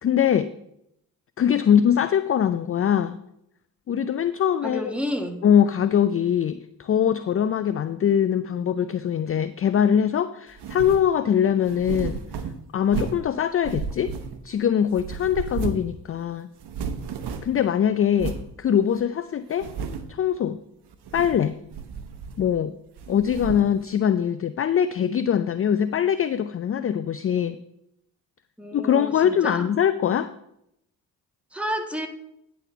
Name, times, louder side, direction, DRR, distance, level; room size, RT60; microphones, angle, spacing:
voice 1, 0.0-0.5 1.4-3.2 3.9-4.8 5.4-12.2 12.7-14.1 14.4-16.5 17.4-19.7 20.1-20.6 21.1-21.6 22.4-22.7 23.1-27.6 28.7-30.3, left 8 dB, 30° left, 13 dB, 0.4 m, -22 dB
voice 2, 4.6-5.4 28.6-29.7 31.5-32.1, equal, 5° right, 4 dB, 1.6 m, -30 dB
sound 1, 10.6-11.1 11.6-13.3 13.6-14.6 14.9-16.0 16.2-16.3 16.6-17.6 18.2-18.5 19.0-19.1 19.5-20.2 20.9-21.5 21.7-22.6 23.0-23.8, right 6 dB, 65° right, 1.0 m, -33 dB
9.8 x 4.2 x 6.7 m, 0.79 s
hypercardioid pair, 50°, 44 cm